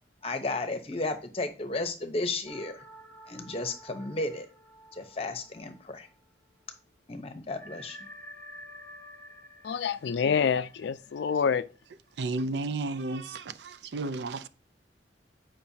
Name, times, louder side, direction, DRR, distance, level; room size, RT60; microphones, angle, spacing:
voice 1, 0.2-2.8 3.3-4.5 4.9-6.1 7.1-8.0, left 2 dB, 30° left, 0.8 m, -33 dB
sound 1, 2.5-6.5 6.8-6.9 7.5-12.1, equal, 10° left, 1.5 m, -51 dB
voice 2, 9.6-11.7, left 6 dB, 70° left, 0.3 m, -27 dB
voice 3, 12.2-14.5, right 3 dB, 70° right, 0.4 m, -33 dB
8.6 x 5.2 x 2.7 m
head